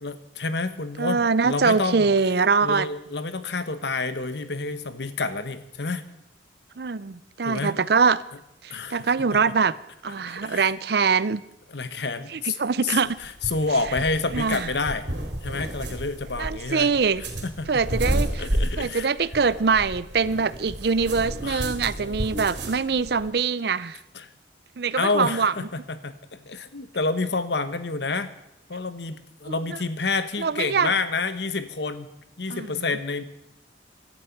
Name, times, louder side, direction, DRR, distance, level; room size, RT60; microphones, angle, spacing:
voice 1, 0.0-2.1 2.6-6.0 7.4-7.8 8.7-9.6 10.2-10.7 11.7-12.6 12.8-15.1 15.4-16.9 17.4-17.8 18.4-19.1 21.4-21.6 22.0-22.5 24.1-24.3 25.0-28.3 28.7-32.1 32.4-33.2, left 3 dB, 70° left, 12 dB, 1.1 m, -29 dB
voice 2, 1.0-2.9 6.8-8.2 8.6-9.7 10.0-11.4 12.3-13.2 14.3-14.7 16.4-17.2 17.7-18.4 18.8-24.0 24.8-25.5 29.5-29.6 30.4-30.9 32.5-32.8, right 5 dB, 60° right, 18 dB, 0.6 m, -23 dB
sound 1, 13.0-23.3, right 1 dB, 75° right, 3.4 m, -31 dB
16.5 x 12.0 x 5.8 m, 0.86 s
head